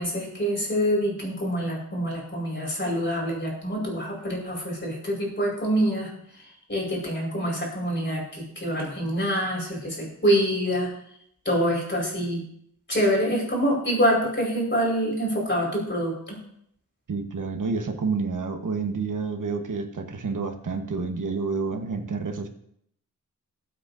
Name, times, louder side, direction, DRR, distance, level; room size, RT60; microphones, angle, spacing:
voice 1, 0.0-6.1 6.7-10.9 11.4-12.4 12.9-16.4, equal, 35° left, -3 dB, 4.9 m, -26 dB
voice 2, 17.1-22.5, right 4 dB, 70° right, 5 dB, 1.3 m, -29 dB
20.0 x 8.0 x 2.7 m, 0.72 s
wide cardioid pair, 110°, 32 cm